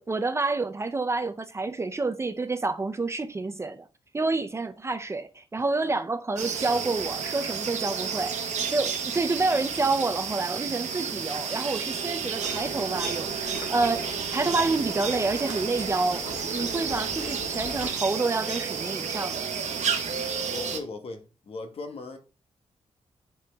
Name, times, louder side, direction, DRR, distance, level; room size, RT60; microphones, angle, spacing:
voice 1, 0.0-3.8 4.1-8.3 8.7-19.5, right 3 dB, 25° right, 0.5 m, -28 dB
sound 1, 6.4-20.8, right 6 dB, 85° right, 1.2 m, -31 dB
Water / Liquid, 12.4-17.9, left 2 dB, 90° left, 3.2 m, -40 dB
voice 2, 20.3-22.2, left 3 dB, 55° left, 1.2 m, -38 dB
7.0 x 5.6 x 3.5 m
wide cardioid pair, 160°, 12 cm